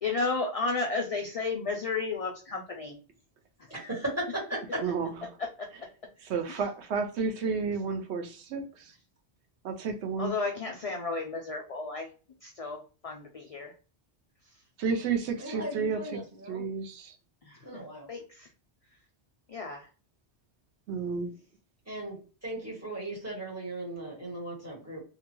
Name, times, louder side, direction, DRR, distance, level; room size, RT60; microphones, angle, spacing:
voice 1, 0.0-3.0 5.6-5.7 6.5-6.6 10.2-12.1 12.4-13.7 17.4-17.8 18.1-18.5 19.5-19.9, left 3 dB, 60° left, 2 dB, 0.3 m, -33 dB
voice 2, 4.8-5.3 6.2-8.9 9.6-10.3 14.8-16.2 16.5-17.1 20.9-21.3, right 5 dB, 85° right, 5 dB, 0.9 m, -31 dB
voice 3, 15.4-16.6 17.6-18.1 21.9-22.2 22.4-25.0, right 1 dB, 15° right, -4 dB, 1.2 m, -38 dB
2.8 x 2.2 x 2.9 m, 0.36 s
omnidirectional pair, 1.1 m